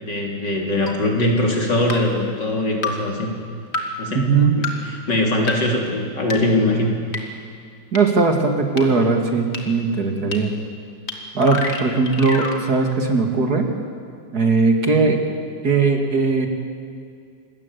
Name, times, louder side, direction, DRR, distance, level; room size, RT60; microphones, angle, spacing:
voice 1, 0.0-3.3 4.0-4.3 4.6-7.0 8.9-9.2 14.8-15.1, left 1 dB, 60° left, 1 dB, 4.4 m, -22 dB
sound 1, 0.9-1.0 1.9-2.0 2.8-2.9 3.7-3.8 4.6-4.7 5.5-5.6 6.3-6.4 7.1-7.2 8.0-8.1 8.8-8.9 9.5-9.6 10.3-10.4 11.1-11.2 11.4-12.6, left 3 dB, 30° left, 2.7 m, -26 dB
voice 2, 4.1-4.6 7.9-10.5 11.3-13.7 14.3-15.2 15.6-16.5, right 4 dB, 50° right, 4 dB, 2.8 m, -19 dB
27.0 x 21.5 x 8.5 m, 2.3 s
omnidirectional pair, 2.1 m